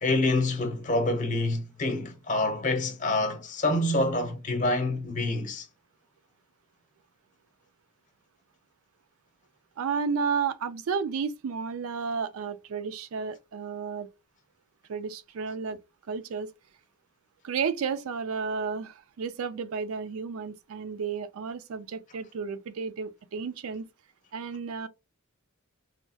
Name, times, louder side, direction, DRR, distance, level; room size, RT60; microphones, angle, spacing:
voice 1, 0.0-5.6, left 2 dB, 35° left, 0.7 m, -27 dB
voice 2, 9.8-14.1 14.9-15.8 16.1-16.5 17.4-23.9 24.3-24.9, right 5 dB, 75° right, 0.4 m, -32 dB
3.2 x 2.3 x 2.7 m
head